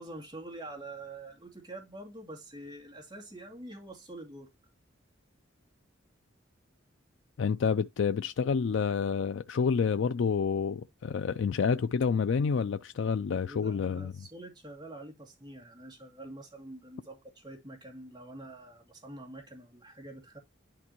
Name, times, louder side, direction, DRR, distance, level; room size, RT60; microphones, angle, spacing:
voice 1, 0.0-4.5 13.4-20.4, right 2 dB, 25° right, 2.5 m, -46 dB
voice 2, 7.4-14.1, left 6 dB, 75° left, 0.4 m, -28 dB
11.0 x 4.3 x 3.0 m
head